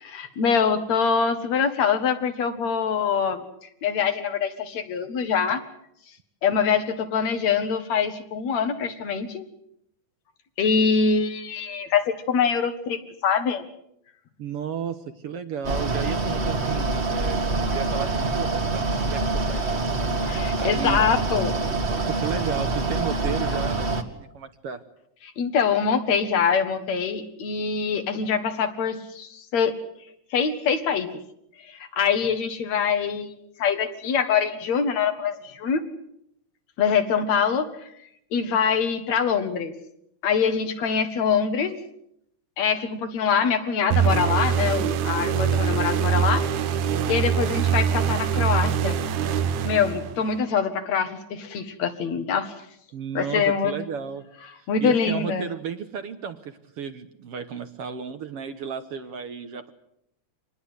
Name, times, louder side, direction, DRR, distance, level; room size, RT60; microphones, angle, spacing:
voice 1, 0.1-3.4 3.8-5.6 6.4-9.4 10.6-13.6 20.2-21.5 25.4-29.8 30.3-31.2 31.6-33.3 33.6-35.8 36.8-37.9 38.3-39.7 40.2-41.7 42.6-46.5 47.1-49.0 49.6-52.5 53.1-53.8 54.7-55.5, left 6 dB, 65° left, 8 dB, 2.9 m, -24 dB
voice 2, 14.4-19.2 19.5-19.8 20.6-21.0 21.6-24.8 52.9-54.3 54.6-59.7, right 7 dB, 60° right, 9 dB, 1.9 m, -33 dB
Mechanical fan, 15.6-24.0, right 3 dB, 25° right, 1.6 m, -25 dB
sound 1, 43.9-50.4, right 8 dB, 75° right, 2.5 m, -23 dB
25.5 x 20.0 x 8.0 m, 0.77 s
omnidirectional pair, 3.4 m